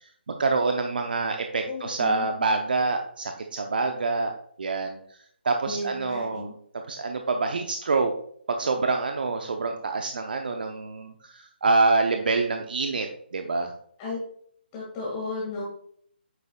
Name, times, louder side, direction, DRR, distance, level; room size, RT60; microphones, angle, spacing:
voice 1, 0.3-4.3 4.6-5.0 5.4-6.5 6.9-8.1 8.5-13.1 13.3-13.7, right 3 dB, 55° right, 4 dB, 0.8 m, -26 dB
voice 2, 1.7-2.5 5.7-6.5 14.0-14.2 14.7-15.6, left 2 dB, 25° left, -5 dB, 1.9 m, -34 dB
9.2 x 6.9 x 2.3 m, 0.64 s
figure-of-eight pair, 145°, 6 cm